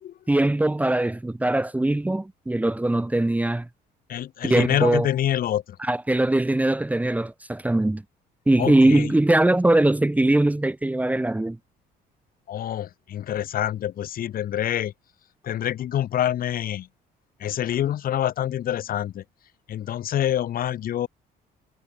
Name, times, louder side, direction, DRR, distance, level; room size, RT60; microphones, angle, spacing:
voice 1, 0.3-3.7 4.4-5.1 5.8-8.0 8.5-11.6, right 1 dB, 10° right, 1.6 m, -21 dB
voice 2, 4.1-5.8 8.6-9.1 12.5-14.9 15.4-16.9 17.4-19.2 19.7-21.1, left 11 dB, 60° left, 3.3 m, -26 dB
cardioid pair, 110°, 17 cm